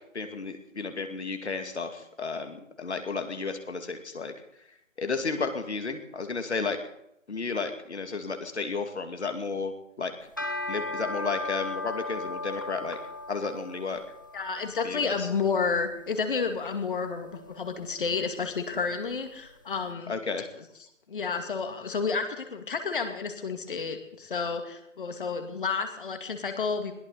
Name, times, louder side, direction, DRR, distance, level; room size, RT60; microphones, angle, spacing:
voice 1, 0.1-4.3 5.0-6.8 7.3-10.1 10.7-13.0 13.3-14.0 14.8-15.3 20.1-20.5, left 4 dB, 60° left, 6 dB, 2.4 m, -32 dB
sound 1, 10.2-19.6, left 2 dB, 15° left, 0.6 m, -38 dB
voice 2, 14.3-20.1 21.1-26.9, left 5 dB, 40° left, 6 dB, 2.3 m, -30 dB
21.5 x 16.0 x 4.2 m, 0.80 s
figure-of-eight pair, 150°, 38 cm